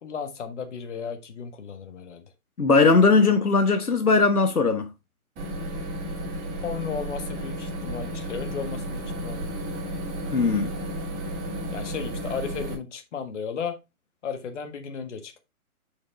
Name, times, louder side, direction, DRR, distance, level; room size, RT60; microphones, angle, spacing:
voice 1, 0.0-2.2 6.6-9.8 11.7-13.7 14.2-15.4, left 6 dB, 55° left, 1.6 m, -35 dB
voice 2, 2.6-4.9 10.3-10.7, left 4 dB, 90° left, 1.1 m, -19 dB
sound 1, 5.4-12.7, equal, 20° right, 2.8 m, -33 dB
6.6 x 5.4 x 3.3 m
figure-of-eight pair, 130°, 44 cm